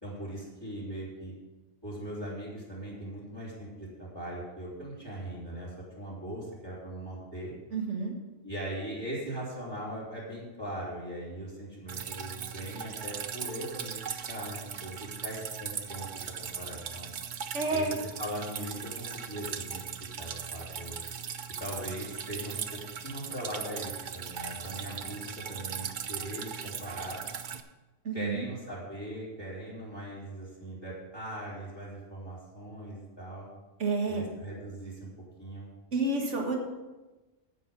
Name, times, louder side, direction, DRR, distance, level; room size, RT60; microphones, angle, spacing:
voice 1, 0.0-1.3 1.8-7.5 8.4-17.1 17.7-19.8 20.2-21.0 21.6-27.2 28.1-33.5 34.1-35.1 35.4-35.7, right 1 dB, 20° left, -8 dB, 3.2 m, -40 dB
voice 2, 7.7-8.1 17.5-18.0 28.1-28.4 33.8-34.2 35.9-36.6, right 3 dB, 70° right, 1 dB, 1.9 m, -29 dB
Drip, 11.9-27.6, right 7 dB, 50° right, 0.7 m, -39 dB
9.4 x 8.6 x 5.4 m, 1.1 s
omnidirectional pair, 1.3 m